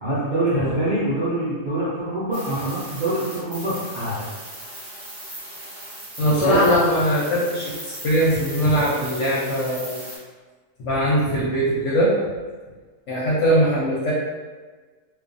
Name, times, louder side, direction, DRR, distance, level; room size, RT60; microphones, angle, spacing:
voice 1, 0.0-4.3 6.2-6.6, right 1 dB, 90° right, -11 dB, 0.4 m, -25 dB
sound 1, 2.3-10.2, right 1 dB, 25° right, 0.6 m, -38 dB
voice 2, 6.2-10.0 10.8-12.2 13.1-14.1, equal, 60° left, -7 dB, 0.8 m, -21 dB
2.4 x 2.3 x 2.5 m, 1.4 s
omnidirectional pair, 1.7 m